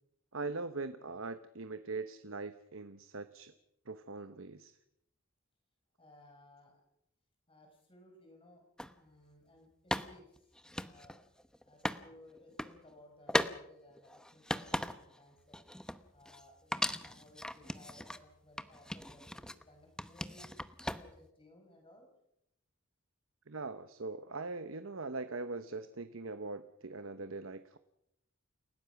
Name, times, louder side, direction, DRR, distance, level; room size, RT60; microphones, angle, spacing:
voice 1, 0.3-3.5 3.9-4.8 23.5-27.8, right 3 dB, 70° right, 10 dB, 1.0 m, -41 dB
voice 2, 6.0-6.8 7.5-8.7 9.0-11.2 11.6-15.6 16.1-20.5 21.0-22.1, left 1 dB, 25° left, 2 dB, 5.4 m, -60 dB
sound 1, 8.8-8.9 9.9-12.0 12.4-12.7 13.3-13.6 14.0-15.2 15.5-16.4 16.7-18.2 18.6-19.6 20.0-21.3, left 1 dB, 5° left, 0.9 m, -38 dB
29.0 x 17.5 x 6.0 m, 0.79 s
head